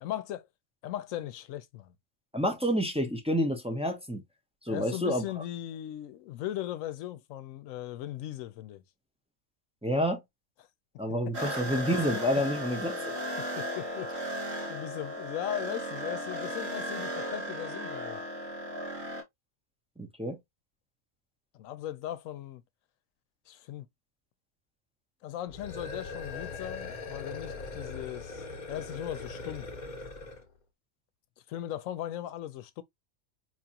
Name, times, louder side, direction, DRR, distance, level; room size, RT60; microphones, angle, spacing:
voice 1, 0.0-0.5 0.8-1.9 4.7-8.8 12.1-12.2 13.4-14.1 14.7-18.2 21.5-22.6 23.5-23.9 25.2-29.7 31.5-32.8, left 12 dB, 90° left, 1.0 m, -38 dB
voice 2, 2.3-4.2 4.6-5.2 9.8-10.2 11.0-13.1 20.0-20.4, equal, 10° right, 0.4 m, -29 dB
sound 1, 11.3-19.2, equal, 80° right, 2.4 m, -36 dB
sound 2, 25.5-30.5, left 3 dB, 40° left, 0.8 m, -40 dB
4.5 x 2.5 x 2.8 m
omnidirectional pair, 1.3 m